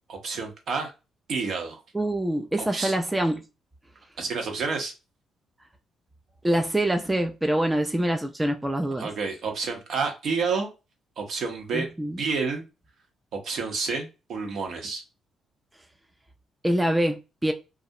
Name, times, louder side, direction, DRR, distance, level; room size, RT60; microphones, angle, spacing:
voice 1, 0.1-0.9 1.3-1.8 2.6-3.0 4.2-4.9 8.9-10.7 11.2-11.9 12.2-12.7 13.3-15.0, right 4 dB, 65° right, 0.7 m, -29 dB
voice 2, 1.9-3.4 6.4-9.1 11.7-12.2 16.6-17.5, right 1 dB, 10° right, 0.3 m, -25 dB
2.4 x 2.0 x 2.6 m
cardioid pair, 90°, 0 cm